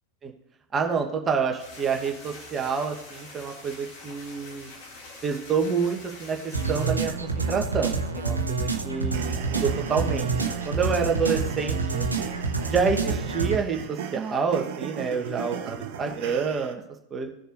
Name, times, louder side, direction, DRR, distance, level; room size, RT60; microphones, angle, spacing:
voice 1, 0.7-4.7 5.2-12.1 12.7-16.8 17.1-17.3, right 5 dB, 20° right, 3 dB, 1.2 m, -28 dB
sound 1, 1.6-6.9, left 2 dB, 50° left, 2.5 m, -45 dB
sound 2, 6.5-13.6, right 4 dB, 80° right, 0.9 m, -28 dB
sound 3, 9.1-16.7, right 8 dB, 50° right, 1.0 m, -37 dB
18.0 x 6.9 x 2.6 m, 0.81 s
figure-of-eight pair, 90°, 0 cm